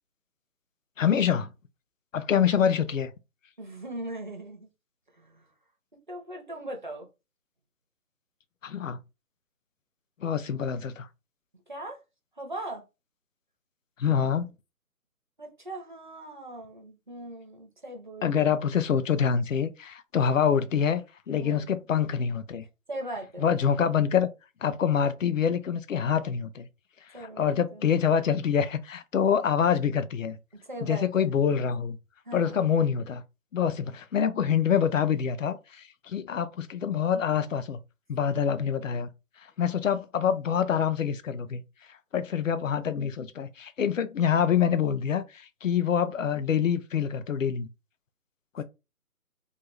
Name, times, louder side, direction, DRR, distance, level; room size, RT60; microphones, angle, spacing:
voice 1, 1.0-1.5 2.1-3.1 8.6-9.0 10.2-11.1 14.0-14.5 18.2-21.0 21.3-22.6 23.4-24.3 24.6-26.7 27.2-30.4 30.8-32.0 32.3-33.2 33.5-37.8 38.1-39.1 39.6-41.6 42.1-47.7 48.5-48.6, left 7 dB, 60° left, 0.5 m, -26 dB
voice 2, 3.6-4.7 5.2-5.5 6.1-7.1 11.7-12.0 12.4-12.8 15.4-18.6 21.3-21.7 22.9-23.6 27.1-27.9 30.7-31.4 32.3-32.6 48.6-48.7, right 1 dB, 35° right, 0.5 m, -39 dB
2.6 x 2.3 x 3.1 m
figure-of-eight pair, 155°, 45 cm